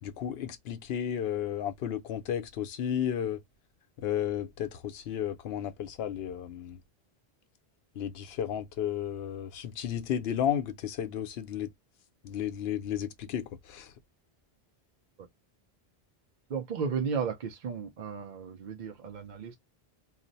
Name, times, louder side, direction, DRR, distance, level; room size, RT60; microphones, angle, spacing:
voice 1, 0.0-3.4 4.0-6.8 8.0-11.7 12.2-13.9, left 9 dB, 75° left, 0.8 m, -33 dB
voice 2, 16.5-19.6, right 6 dB, 55° right, 0.6 m, -34 dB
2.5 x 2.0 x 3.8 m
omnidirectional pair, 1.0 m